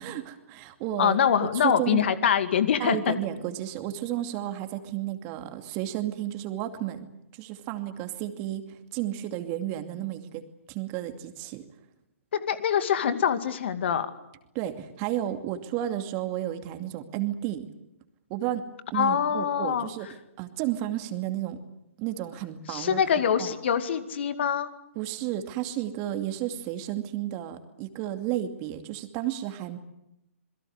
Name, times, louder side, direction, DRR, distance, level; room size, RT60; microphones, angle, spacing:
voice 1, 0.0-2.0 2.8-7.1 7.3-10.4 10.7-11.6 14.5-17.7 18.3-18.6 18.9-20.1 20.4-21.6 22.0-23.0 23.4-23.5 25.0-29.8, right 13 dB, 30° right, 8 dB, 2.5 m, -32 dB
voice 2, 1.0-3.2 12.3-14.1 18.9-19.9 22.7-24.7, left 8 dB, 55° left, 11 dB, 2.2 m, -24 dB
27.5 x 22.0 x 8.0 m, 0.86 s
figure-of-eight pair, 125°, 7 cm